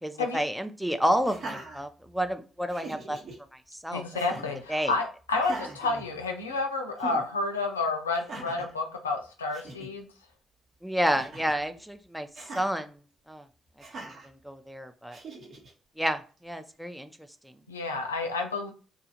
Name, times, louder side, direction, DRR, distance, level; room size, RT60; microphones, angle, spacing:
voice 1, 0.0-3.2 3.5-4.0 4.7-4.9 10.8-12.3 12.5-13.0 13.3-13.4 14.0-14.1 14.4-15.2 16.0-17.1 17.4-17.5, equal, 5° right, 7 dB, 0.4 m, -30 dB
Laughter, 1.2-2.3 2.7-3.4 4.1-4.6 5.4-6.6 7.0-7.2 8.1-8.7 9.2-9.3 9.5-9.9 11.0-11.6 12.3-12.7 13.8-14.3 15.1-15.7, right 3 dB, 50° right, 0.8 m, -42 dB
voice 2, 3.9-10.1 17.7-18.7, left 3 dB, 85° left, 4 dB, 0.3 m, -30 dB
2.8 x 2.3 x 2.7 m, 0.36 s
figure-of-eight pair, 40°, 0 cm